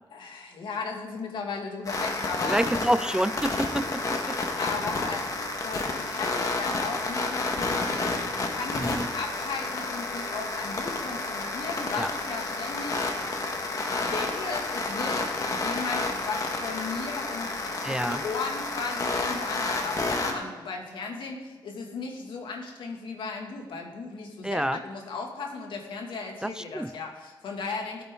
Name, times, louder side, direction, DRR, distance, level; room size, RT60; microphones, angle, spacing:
voice 1, 0.1-2.9 4.6-28.0, left 4 dB, 70° left, 1 dB, 2.4 m, -36 dB
sound 1, 1.8-20.3, left 3 dB, 40° left, 1.7 m, -30 dB
voice 2, 2.4-4.4 8.8-9.1 12.0-12.1 17.8-18.2 24.4-24.8 26.4-26.9, right 1 dB, 10° right, 12 dB, 0.4 m, -28 dB
19.5 x 9.0 x 3.9 m, 1.3 s
cardioid pair, 100°, 9 cm